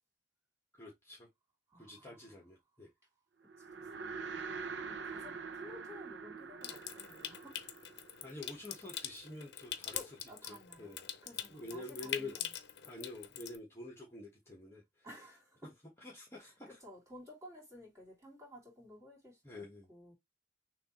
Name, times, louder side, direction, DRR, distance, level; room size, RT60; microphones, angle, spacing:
voice 1, 0.7-1.3 1.8-2.9 8.2-10.2 10.5-11.1 11.5-12.4 12.9-15.1 16.0-16.8 19.4-19.9, left 2 dB, 15° left, 1.4 m, -48 dB
voice 2, 1.7-2.2 3.4-4.2 4.8-7.5 9.9-10.9 11.2-12.5 15.0-15.7 16.4-20.1, left 1 dB, 15° right, 3.0 m, -54 dB
sound 1, 3.5-8.9, right 5 dB, 80° right, 0.7 m, -45 dB
Water tap faucet / Sink (filling or washing) / Trickle dribble, 6.6-13.6, left 10 dB, 65° left, 0.7 m, -44 dB
6.5 x 2.7 x 3.1 m
head